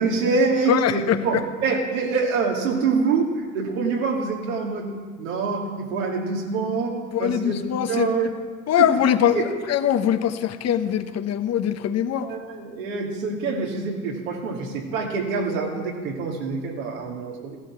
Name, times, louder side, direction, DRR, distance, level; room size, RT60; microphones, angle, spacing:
voice 1, 0.0-4.9 5.2-7.6 7.9-8.3 8.8-8.9 9.3-9.4 12.2-17.6, right 4 dB, 75° right, -1 dB, 2.8 m, -25 dB
voice 2, 0.7-1.2 7.1-8.1 8.7-12.3, left 9 dB, 40° left, 10 dB, 1.1 m, -22 dB
16.0 x 11.5 x 6.0 m, 1.5 s
hypercardioid pair, 70°, 39 cm